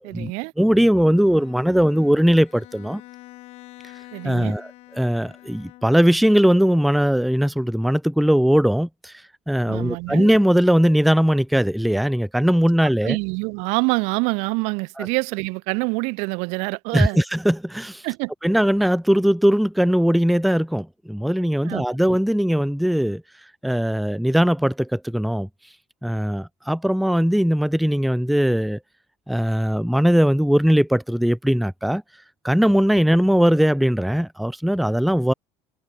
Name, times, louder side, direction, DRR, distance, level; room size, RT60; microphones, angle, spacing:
voice 1, 0.0-0.5 4.1-4.5 9.7-10.3 13.0-17.2 18.0-18.3 21.6-21.8, right 31 dB, 75° right, 0.9 m, -26 dB
voice 2, 0.6-3.0 4.2-9.1 9.5-13.2 15.0-15.1 16.9-18.0 18.4-23.2 23.6-25.5 26.0-28.8 29.3-32.0 32.4-35.3, equal, ahead, 0.5 m, -19 dB
Bowed string instrument, 0.9-6.2, left 18 dB, 60° left, 3.2 m, -46 dB
cardioid pair, 130°, 12 cm